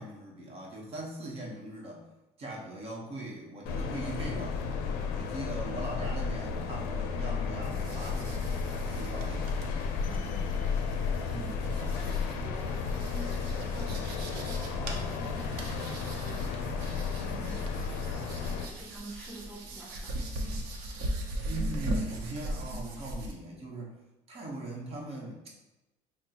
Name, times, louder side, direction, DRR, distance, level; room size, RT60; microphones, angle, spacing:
voice 1, 0.0-2.1 2.4-4.6 5.1-8.5 9.0-9.6 11.3-11.6 21.5-23.9 24.3-25.4, right 1 dB, 40° right, -2 dB, 1.0 m, -40 dB
sound 1, 3.7-18.7, left 5 dB, 80° left, 0.4 m, -33 dB
sound 2, 7.6-23.3, right 1 dB, 80° right, 0.7 m, -39 dB
voice 2, 10.0-10.5 11.3-20.3, right 2 dB, 5° left, -4 dB, 0.7 m, -48 dB
5.8 x 2.1 x 2.8 m, 0.99 s
cardioid pair, 125°, 15 cm